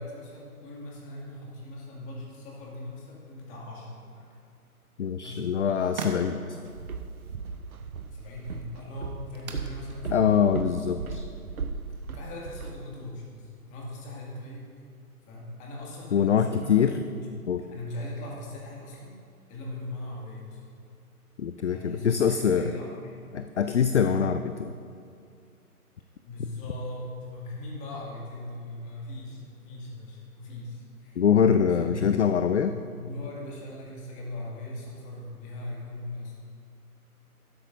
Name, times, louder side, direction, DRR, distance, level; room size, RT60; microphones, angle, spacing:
voice 1, 0.0-4.3 5.2-5.5 8.1-10.3 12.1-14.7 15.3-17.3 17.7-19.2 19.5-20.6 21.7-23.1 26.2-31.2 31.7-32.0 32.6-36.3, left 1 dB, 15° left, -3 dB, 2.0 m, -39 dB
voice 2, 5.0-6.6 10.1-11.3 16.1-16.9 17.5-17.6 21.4-22.7 23.3-24.7 31.2-32.7, left 7 dB, 50° left, 9 dB, 0.5 m, -24 dB
sound 1, 5.0-12.3, right 4 dB, 30° right, 0.9 m, -45 dB
Walk footsteps, 6.7-12.8, right 5 dB, 70° right, 0.8 m, -37 dB
15.5 x 12.5 x 2.6 m, 2.4 s
figure-of-eight pair, 130°, 45 cm